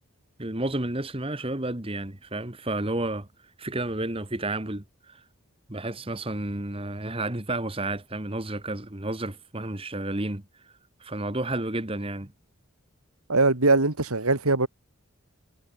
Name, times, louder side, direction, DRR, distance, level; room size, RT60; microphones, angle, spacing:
voice 1, 0.4-3.3 3.6-5.2 5.7-10.4 11.0-12.3, right 2 dB, 25° right, 1.6 m, -31 dB
voice 2, 13.3-14.7, right 3 dB, 85° right, 2.4 m, -21 dB
head